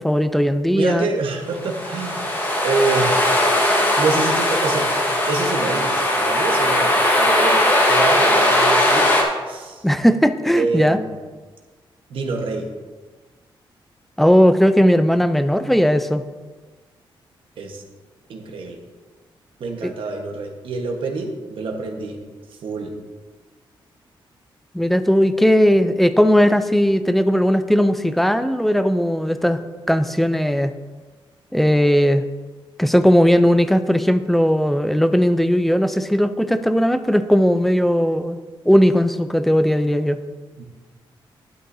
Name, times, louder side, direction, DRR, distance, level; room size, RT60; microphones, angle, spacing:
voice 1, 0.0-1.1 9.8-11.0 14.2-16.2 19.8-19.9 24.7-29.6 29.9-30.7 31.5-32.2 32.8-38.4 38.7-40.2, equal, ahead, 10 dB, 0.4 m, -17 dB
voice 2, 0.7-2.3 2.6-3.2 4.0-9.1 9.5-9.8 10.5-11.2 12.1-12.7 17.6-17.8 18.3-18.8 19.6-22.2 22.6-22.9 40.6-40.7, right 3 dB, 75° right, 3 dB, 1.3 m, -26 dB
sound 1, 1.6-9.2, left 1 dB, 25° left, 1.4 m, -18 dB
12.0 x 9.3 x 2.7 m, 1.4 s
wide cardioid pair, 160°, 9 cm